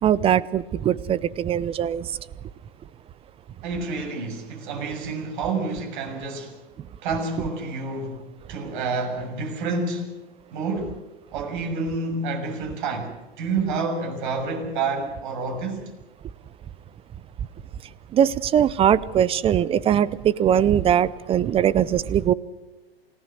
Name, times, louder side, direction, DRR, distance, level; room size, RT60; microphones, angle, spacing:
voice 1, 0.0-2.1 18.1-22.3, right 10 dB, 20° right, 0.6 m, -21 dB
voice 2, 3.6-6.6 7.0-8.2 8.5-10.1 10.5-11.0 11.3-15.9, right 3 dB, 55° right, 6.6 m, -28 dB
28.5 x 17.5 x 6.6 m
hypercardioid pair, 115°, 31 cm